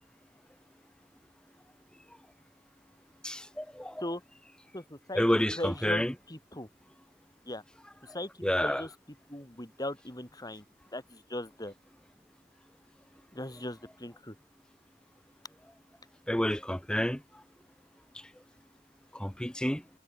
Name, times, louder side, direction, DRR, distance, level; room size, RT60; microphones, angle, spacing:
voice 1, 3.2-4.0 5.1-6.1 8.4-8.8 16.3-17.2 19.1-19.8, equal, 5° left, 1.0 m, -29 dB
voice 2, 4.7-5.2 5.6-6.7 7.5-7.6 8.0-8.3 8.6-8.9 9.3-10.6 10.9-11.7 13.3-14.4, left 1 dB, 20° left, 6.1 m, -38 dB
head